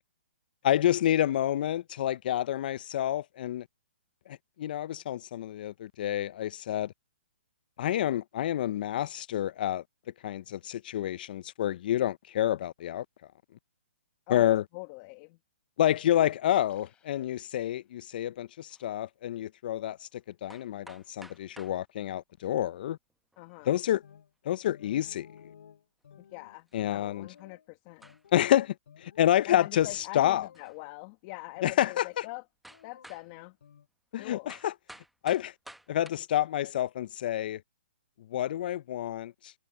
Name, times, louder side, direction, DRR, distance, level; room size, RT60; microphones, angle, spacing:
voice 1, 0.6-3.7 4.3-6.9 7.8-9.8 10.2-13.1 14.3-14.6 15.8-20.1 20.4-23.0 23.7-24.0 24.4-25.3 26.7-27.3 28.3-30.5 31.6-32.2 34.1-34.7 35.2-35.5 35.9-37.6 38.3-39.5, left 12 dB, 50° left, 0.5 m, -28 dB
voice 2, 14.3-15.4 23.4-23.8 26.2-28.1 29.5-32.4 32.8-33.6 34.2-34.5, left 24 dB, 35° left, 1.5 m, -43 dB
sound 1, 16.7-18.2, left 10 dB, 15° left, 4.6 m, -69 dB
sound 2, 18.7-18.9 20.1-20.2 20.5-21.8 23.1-23.6 25.0-25.1 25.4-25.5 26.7-26.9 27.4-27.5 28.0-28.4 30.5-30.8 31.5-31.6 32.6-33.3 34.5-36.1, right 1 dB, ahead, 0.9 m, -52 dB
sound 3, 24.0-24.3 24.7-27.7 28.0-28.6 28.9-29.3 29.8-30.9 31.6-32.4 32.7-33.9, left 8 dB, 70° left, 5.0 m, -55 dB
hypercardioid pair, 150°, 6 cm